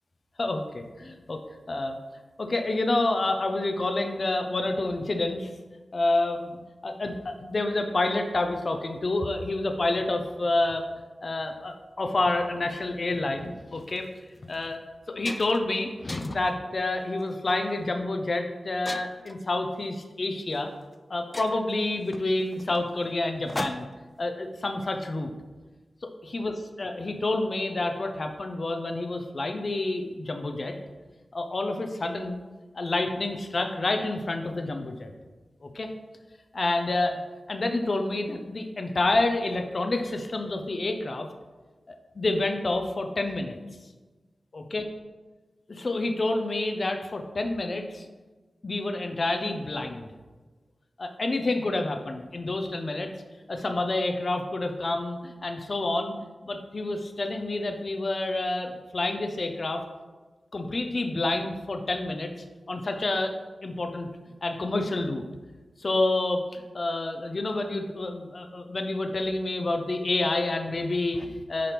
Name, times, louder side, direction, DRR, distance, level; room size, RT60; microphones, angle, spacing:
voice 1, 0.4-1.4 1.7-2.0 2.4-5.5 5.9-10.8 11.2-14.1 14.4-14.8 15.1-20.7 21.1-23.9 24.2-25.3 26.2-30.7 31.3-32.4 32.7-35.1 35.6-35.9 36.5-37.2 37.5-41.3 42.1-43.6 44.5-44.8 45.7-48.1 48.6-50.1 51.0-53.1 53.5-56.1 56.5-59.8 60.5-62.3 62.7-63.3 63.6-64.1 64.4-65.2 65.8-71.7, left 2 dB, 50° left, 5 dB, 0.7 m, -28 dB
sound 1, 13.8-14.0 14.5-14.7 14.9-15.7 16.1-16.5 17.2-17.5 18.9-19.4 20.5-20.6 20.9-21.0 21.3-24.1, left 1 dB, 15° left, 0.4 m, -39 dB
8.7 x 3.5 x 5.9 m, 1.3 s
wide cardioid pair, 90°, 0 cm